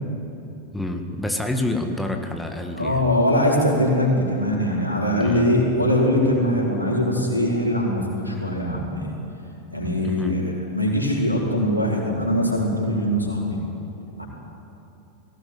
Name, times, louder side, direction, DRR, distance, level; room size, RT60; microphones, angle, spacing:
voice 1, 0.7-3.1 5.2-5.5 10.0-10.4, left 1 dB, 5° left, 4 dB, 1.9 m, -28 dB
voice 2, 2.8-9.1 9.7-10.4 10.7-13.6 14.2-14.3, equal, 90° right, -2 dB, 4.9 m, -22 dB
21.0 x 17.5 x 9.4 m, 2.9 s
figure-of-eight pair, 90°, 0 cm